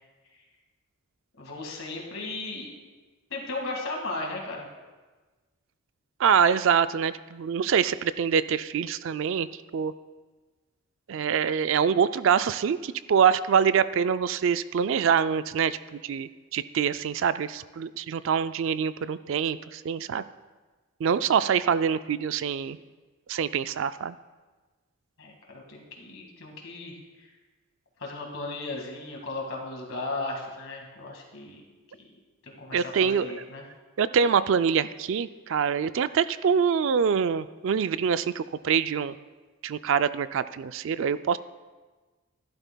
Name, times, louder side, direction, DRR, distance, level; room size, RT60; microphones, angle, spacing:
voice 1, 1.4-2.7 3.3-4.7 25.2-27.3 28.0-31.6 32.4-33.6, left 2 dB, 65° left, 0 dB, 1.9 m, -36 dB
voice 2, 6.2-9.5 9.7-9.9 11.1-20.2 21.0-22.8 23.3-24.1 32.7-33.4 34.0-39.1 39.6-41.4, right 7 dB, 60° right, 14 dB, 0.3 m, -25 dB
15.0 x 11.5 x 2.2 m, 1.3 s
head